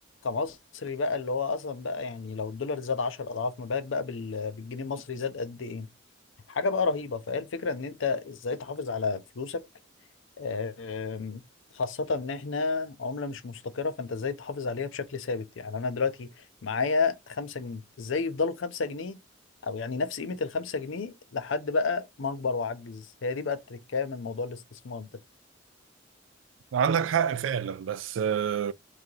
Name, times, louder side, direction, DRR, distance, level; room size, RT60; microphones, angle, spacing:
voice 1, 0.2-5.9 6.5-9.6 10.4-11.4 11.7-16.3 16.6-19.2 19.6-25.1, left 4 dB, 85° left, 0.6 m, -31 dB
voice 2, 26.7-28.7, right 7 dB, 85° right, 0.4 m, -27 dB
3.2 x 2.8 x 3.7 m
head